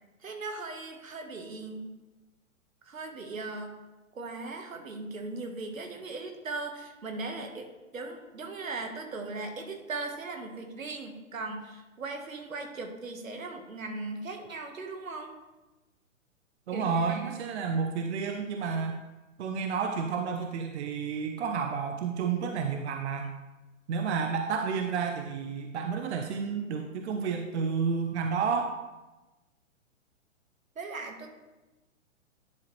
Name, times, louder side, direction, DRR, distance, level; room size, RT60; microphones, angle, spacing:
voice 1, 0.2-1.9 2.9-3.8 4.1-7.7 7.9-15.3 16.7-17.4 30.7-31.3, right 3 dB, 80° right, 4 dB, 1.5 m, -38 dB
voice 2, 16.7-19.0 19.4-23.3 23.9-28.8, right 5 dB, 55° right, 4 dB, 0.7 m, -30 dB
10.5 x 4.8 x 3.2 m, 1.1 s
hypercardioid pair, 125°, 40 cm